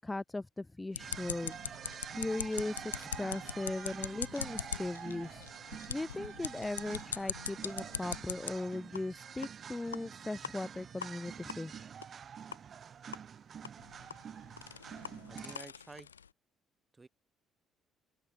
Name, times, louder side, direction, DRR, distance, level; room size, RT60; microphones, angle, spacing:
voice 1, 0.0-1.6 2.2-5.5 5.9-11.9, left 2 dB, 15° left, 0.5 m, -38 dB
sound 1, 0.9-8.5 8.9-9.0 9.4-9.5 9.9-10.0 10.4-10.5 11.0-11.1 11.5-11.6 12.0-12.1 12.5-12.6 13.1-13.2 13.6-16.3, left 7 dB, 85° left, 0.5 m, -42 dB
sound 2, 1.0-15.6, right 7 dB, 45° right, 0.5 m, -47 dB
voice 2, 15.3-16.1 16.9-17.1, right 3 dB, 20° right, 1.7 m, -51 dB
open air
figure-of-eight pair, 50°, 0 cm